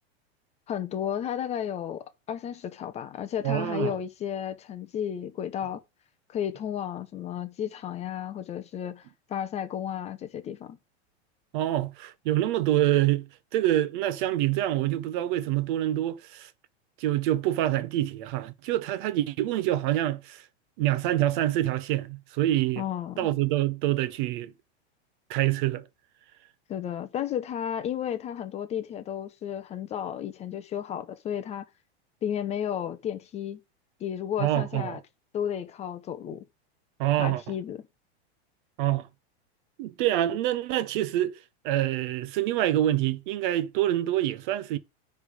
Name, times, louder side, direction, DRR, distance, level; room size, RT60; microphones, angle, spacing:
voice 1, 0.7-5.8 6.3-9.0 9.3-10.8 22.8-23.3 26.7-31.6 32.2-33.6 34.0-35.0 35.3-36.4 37.2-37.8, left 9 dB, 20° left, 0.6 m, -33 dB
voice 2, 3.4-3.9 11.5-16.5 17.0-20.4 20.8-22.8 23.2-24.5 25.3-25.9 34.4-35.0 37.0-37.4 38.8-39.1 39.8-41.4 41.6-44.8, right 13 dB, 50° right, 0.7 m, -26 dB
9.9 x 3.4 x 5.1 m
supercardioid pair, 155°, 33 cm